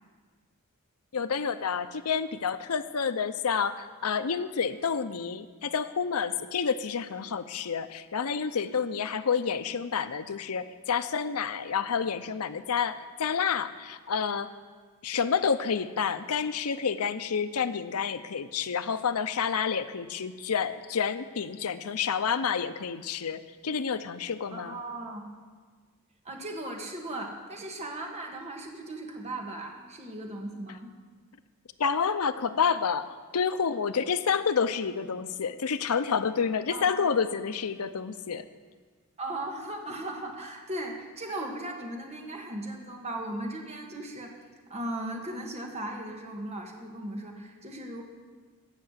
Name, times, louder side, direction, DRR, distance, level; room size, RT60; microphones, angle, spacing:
voice 1, 1.1-14.5 15.0-24.7 31.8-38.4, left 6 dB, 90° left, 11 dB, 0.7 m, -29 dB
voice 2, 24.5-25.3 26.2-30.9 36.7-37.1 39.2-44.3 44.7-48.0, right 1 dB, 30° right, 2 dB, 1.5 m, -37 dB
15.5 x 5.8 x 8.0 m, 1.5 s
head